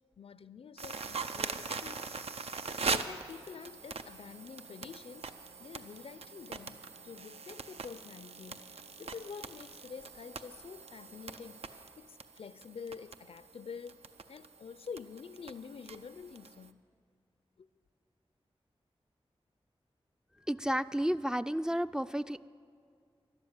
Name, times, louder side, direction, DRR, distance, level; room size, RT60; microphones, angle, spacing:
voice 1, 0.2-2.1 2.4-8.7 9.0-14.0 14.3-16.8 17.6-17.7, left 6 dB, 70° left, 0.4 m, -48 dB
sound 1, 0.8-16.7, right 4 dB, 85° right, 0.5 m, -42 dB
voice 2, 20.5-22.5, equal, 5° right, 0.3 m, -32 dB
12.5 x 11.5 x 8.1 m
wide cardioid pair, 60°, 10 cm